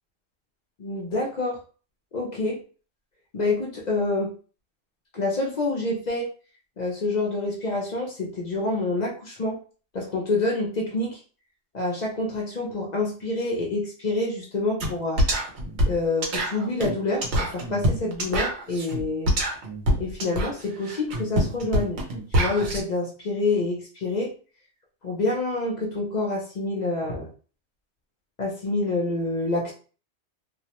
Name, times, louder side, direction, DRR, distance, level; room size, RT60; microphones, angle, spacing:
voice 1, 0.8-1.6 2.1-2.6 3.3-4.3 5.1-6.3 6.8-9.6 9.9-11.2 11.7-15.2 15.9-19.3 20.0-22.0 22.3-24.3 25.0-27.3 28.4-29.7, left 2 dB, 50° left, -2 dB, 0.5 m, -27 dB
sound 1, 14.8-14.9 15.2-22.8, equal, 75° right, 0.9 m, -25 dB
2.4 x 2.0 x 2.8 m, 0.39 s
omnidirectional pair, 1.2 m